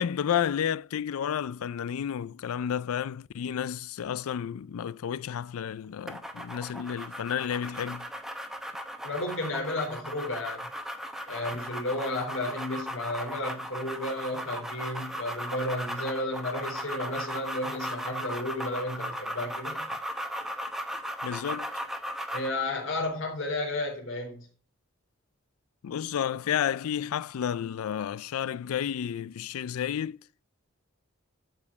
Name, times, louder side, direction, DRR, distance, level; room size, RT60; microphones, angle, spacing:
voice 1, 0.0-8.1 21.0-21.7 25.8-30.2, left 9 dB, 85° left, 0.4 m, -31 dB
sound 1, 6.1-22.6, equal, ahead, 0.8 m, -37 dB
voice 2, 9.0-10.7 11.3-19.9 22.3-24.5, left 1 dB, 65° left, 3.6 m, -33 dB
12.5 x 5.0 x 4.6 m
head